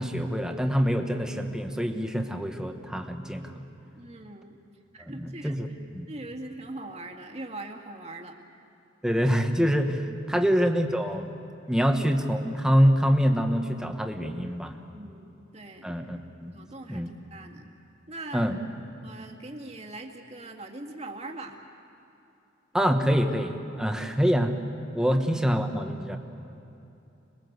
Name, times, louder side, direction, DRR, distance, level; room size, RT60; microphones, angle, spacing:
voice 1, 0.0-3.7 5.1-5.7 5.9-6.1 9.0-11.3 11.7-14.7 15.8-16.5 16.9-17.1 18.3-18.6 22.7-24.6 24.9-26.2, equal, 5° right, 4 dB, 1.3 m, -25 dB
voice 2, 4.0-4.6 4.9-5.6 6.1-8.4 11.8-11.9 14.9-15.9 16.5-17.7 18.1-18.5 19.0-21.6 25.0-25.2, right 2 dB, 35° right, 2 dB, 2.1 m, -41 dB
26.5 x 21.5 x 8.0 m, 2.9 s
head